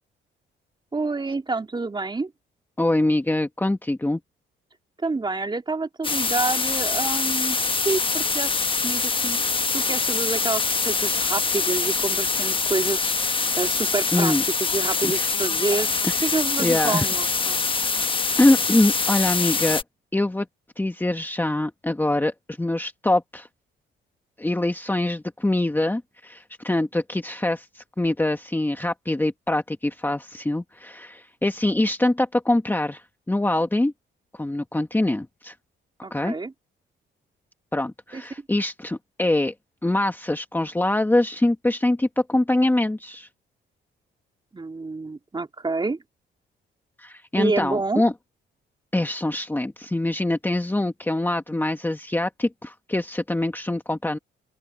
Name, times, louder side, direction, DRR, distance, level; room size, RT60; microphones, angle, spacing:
voice 1, 0.9-2.3 5.0-7.6 7.8-17.6 36.0-36.5 38.1-38.2 44.5-46.0 47.3-48.0, right 3 dB, 25° right, 3.2 m, -28 dB
voice 2, 2.8-4.2 14.1-14.4 14.8-15.3 16.0-16.2 16.6-17.1 18.4-19.8 20.1-20.4 20.8-23.5 24.4-33.9 34.3-35.5 36.1-36.3 37.7-39.5 39.8-43.3 47.0-48.1 48.9-54.2, left 1 dB, 10° left, 1.5 m, -24 dB
sound 1, 6.0-19.8, left 4 dB, 25° left, 1.1 m, -24 dB
open air
cardioid pair, 90°, 20 cm